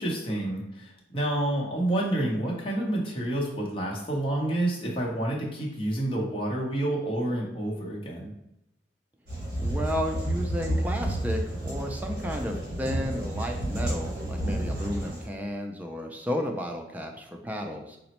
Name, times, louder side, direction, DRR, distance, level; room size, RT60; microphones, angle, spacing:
voice 1, 0.0-8.3, right 1 dB, 30° left, -3 dB, 0.7 m, -29 dB
sound 1, 9.3-15.3, right 1 dB, 60° right, 1.5 m, -31 dB
voice 2, 9.6-18.0, equal, 10° right, 3 dB, 0.3 m, -33 dB
4.0 x 2.0 x 2.9 m, 0.86 s
head